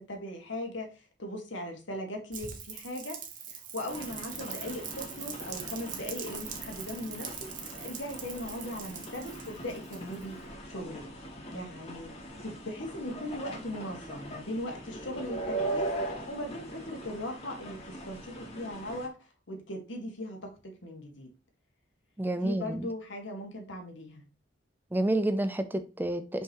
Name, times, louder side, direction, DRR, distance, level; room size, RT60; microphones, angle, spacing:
voice 1, 0.0-3.2 3.5-11.1 11.5-12.1 12.4-15.9 16.3-19.2 19.5-21.3 22.3-24.2, left 1 dB, 80° left, 2 dB, 2.0 m, -39 dB
Rain, 2.3-10.4, right 8 dB, 45° right, 1.1 m, -42 dB
sound 1, 3.9-19.1, right 1 dB, 35° left, 2.1 m, -40 dB
voice 2, 22.2-22.9 24.9-26.4, right 1 dB, 10° right, 10 dB, 0.5 m, -29 dB
5.7 x 5.5 x 3.0 m, 0.31 s
head